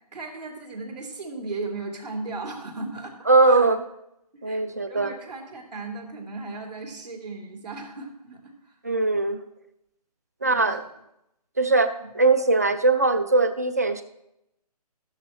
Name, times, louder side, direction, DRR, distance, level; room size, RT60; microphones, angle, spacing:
voice 1, 0.1-3.7 4.3-8.7 10.4-10.8 11.9-12.1, right 3 dB, 80° right, 0 dB, 3.3 m, -36 dB
voice 2, 3.3-3.8 4.4-5.1 8.8-9.4 10.4-10.8 11.6-14.0, right 3 dB, 25° right, 10 dB, 0.3 m, -20 dB
12.5 x 12.0 x 3.1 m, 0.83 s
hypercardioid pair, 165°, 21 cm